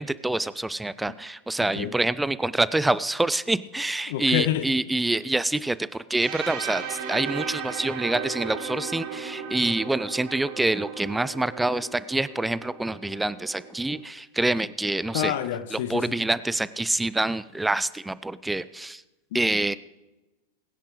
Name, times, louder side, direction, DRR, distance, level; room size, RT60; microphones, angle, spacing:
voice 1, 0.0-15.3 15.7-19.0 19.3-19.7, right 2 dB, 5° right, 17 dB, 0.4 m, -26 dB
voice 2, 4.1-4.7 15.1-16.2 19.3-19.4, left 12 dB, 55° left, 12 dB, 1.0 m, -27 dB
sound 1, 6.2-14.0, right 7 dB, 50° right, 3.7 m, -36 dB
21.5 x 10.0 x 3.2 m, 1.1 s
figure-of-eight pair, 90°, 0 cm